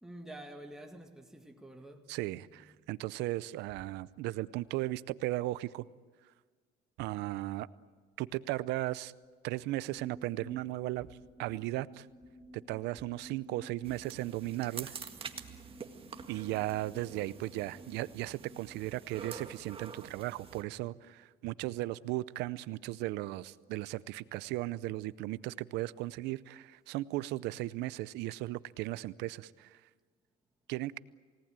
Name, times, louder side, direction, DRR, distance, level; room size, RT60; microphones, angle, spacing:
voice 1, 0.0-2.1 2.5-2.8, right 1 dB, 5° right, 2.1 m, -49 dB
voice 2, 2.1-5.9 7.0-7.7 8.2-9.1 9.4-11.1 11.4-12.1 12.5-15.0 16.3-29.8 30.7-31.0, right 17 dB, 90° right, 0.6 m, -36 dB
sound 1, 9.9-18.7, equal, 60° left, 5.0 m, -54 dB
sound 2, 13.8-20.6, right 5 dB, 35° right, 1.8 m, -47 dB
28.5 x 18.0 x 9.0 m
cardioid pair, 110°, 17 cm